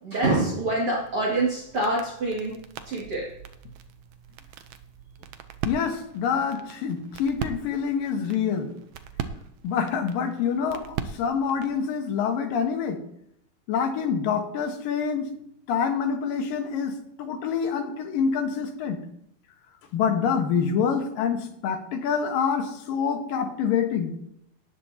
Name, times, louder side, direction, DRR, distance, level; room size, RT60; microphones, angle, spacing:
voice 1, 0.0-2.5 2.9-3.3, right 2 dB, 45° right, -5 dB, 3.0 m, -25 dB
sound 1, 1.0-11.8, right 8 dB, 75° right, 1.7 m, -40 dB
voice 2, 5.6-8.7 9.6-13.0 13.7-15.3 15.7-19.0 19.9-24.1, left 6 dB, 80° left, 4 dB, 3.1 m, -26 dB
18.5 x 10.5 x 2.9 m, 0.77 s
omnidirectional pair, 4.0 m